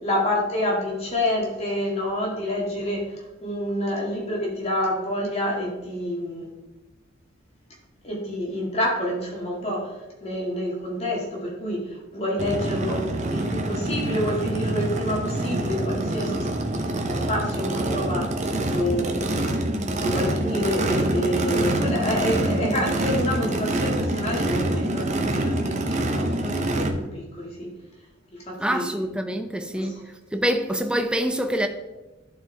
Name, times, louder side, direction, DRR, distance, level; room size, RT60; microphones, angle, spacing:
voice 1, 0.0-3.0 3.4-6.5 8.0-9.9 10.2-16.5 17.3-18.3 18.7-19.4 20.0-27.7 28.3-28.8 29.8-30.0, left 1 dB, 30° left, 1.8 m, -28 dB
Race car auto racing / Idling / Accelerating revving vroom, 12.4-26.9, right 1 dB, 35° right, 0.7 m, -26 dB
voice 2, 28.6-30.0 30.3-31.7, equal, 5° right, 0.4 m, -25 dB
11.0 x 4.5 x 3.3 m
head